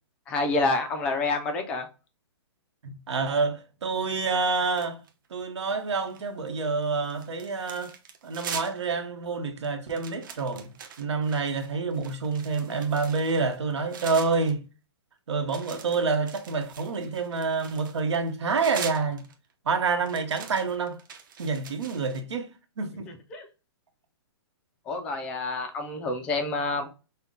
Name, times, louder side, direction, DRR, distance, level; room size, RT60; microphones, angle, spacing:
voice 1, 0.3-1.9 23.1-23.5 24.9-26.9, left 3 dB, 5° left, 0.3 m, -28 dB
voice 2, 2.8-5.0 5.3-7.9 8.2-14.6 15.3-19.3 19.6-21.0 21.4-22.5 22.8-23.1, right 4 dB, 85° right, 1.2 m, -28 dB
sound 1, 4.8-5.3 5.7-6.5 6.8-8.9 9.2-9.3 9.6-14.5 15.5-19.5 20.0-22.2, right 6 dB, 45° right, 0.8 m, -42 dB
5.7 x 2.2 x 3.7 m
hypercardioid pair, 175°, 14 cm